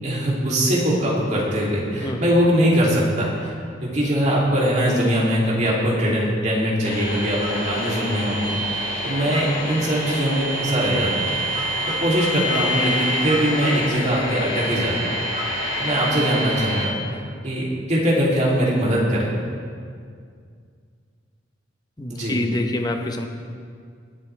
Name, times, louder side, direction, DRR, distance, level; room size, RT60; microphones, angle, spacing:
voice 1, 0.0-3.5 3.8-11.3 11.8-15.1 15.8-17.0 17.4-19.3 22.1-22.4, equal, 40° right, -5 dB, 2.8 m, -21 dB
sound 1, 6.8-16.9, equal, 50° left, 2.0 m, -27 dB
voice 2, 22.0-23.3, left 1 dB, 20° left, 4 dB, 0.8 m, -26 dB
21.0 x 8.1 x 3.3 m, 2.2 s
head